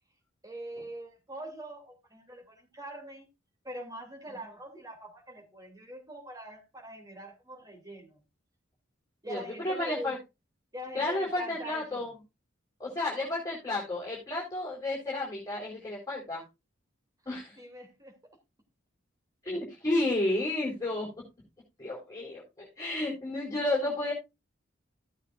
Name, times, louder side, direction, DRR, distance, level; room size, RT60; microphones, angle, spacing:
voice 1, 0.4-3.3 3.6-8.2 9.2-10.1 10.7-12.1 13.1-13.3 17.6-18.4, right 1 dB, 20° right, 2.5 m, -43 dB
voice 2, 9.3-10.2 10.9-12.1 12.8-16.4 17.3-17.6 19.5-21.1 21.8-24.1, left 2 dB, 15° left, 4.0 m, -32 dB
15.5 x 8.3 x 2.4 m
head